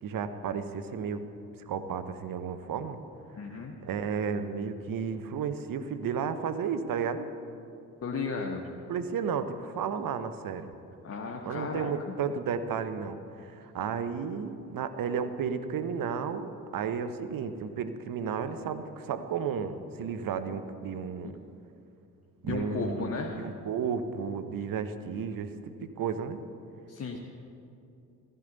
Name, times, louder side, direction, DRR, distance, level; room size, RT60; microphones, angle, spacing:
voice 1, 0.0-1.2 1.7-3.0 3.5-7.3 8.9-10.7 11.4-21.4 22.4-26.4 27.1-27.2, right 6 dB, 50° right, 10 dB, 1.0 m, -33 dB
voice 2, 3.3-3.8 8.0-8.7 11.0-12.1 21.2-21.3 22.4-23.4 26.9-27.2, left 4 dB, 35° left, 0 dB, 1.3 m, -34 dB
15.0 x 14.5 x 4.0 m, 2.6 s
figure-of-eight pair, 45°, 44 cm